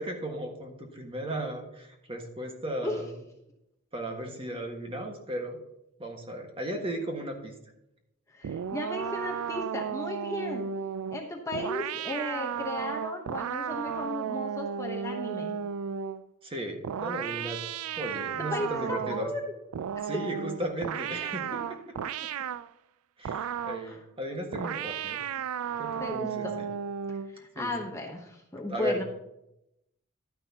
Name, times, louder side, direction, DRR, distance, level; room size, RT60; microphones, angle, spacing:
voice 1, 0.0-3.2 3.9-5.6 6.0-7.6 16.4-19.3 20.0-21.8 22.0-22.3 23.2-25.2 25.8-26.7 27.5-27.7 28.7-29.0, right 1 dB, 25° right, 2 dB, 1.6 m, -36 dB
voice 2, 8.3-10.6 11.1-15.6 18.5-19.5 20.0-20.1 23.8-24.0 26.0-26.6 27.3-29.0, left 1 dB, 15° left, 1 dB, 0.9 m, -35 dB
sound 1, 8.4-16.3 16.8-19.4 19.7-22.7 23.2-23.9 24.5-27.4, right 8 dB, 80° right, 0.3 m, -34 dB
11.5 x 9.9 x 2.8 m, 0.83 s
head